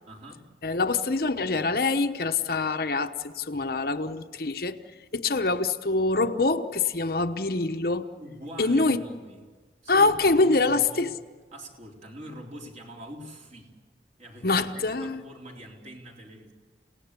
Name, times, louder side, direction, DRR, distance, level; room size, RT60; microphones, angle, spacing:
voice 1, 0.0-0.5 8.2-9.4 9.8-11.1 11.5-13.7 14.2-16.5, equal, 40° right, 3.9 m, -43 dB
voice 2, 0.6-4.8 5.1-8.1 8.6-9.0 9.9-11.1 14.4-15.2, left 3 dB, 55° left, 1.0 m, -25 dB
29.5 x 18.0 x 8.3 m
head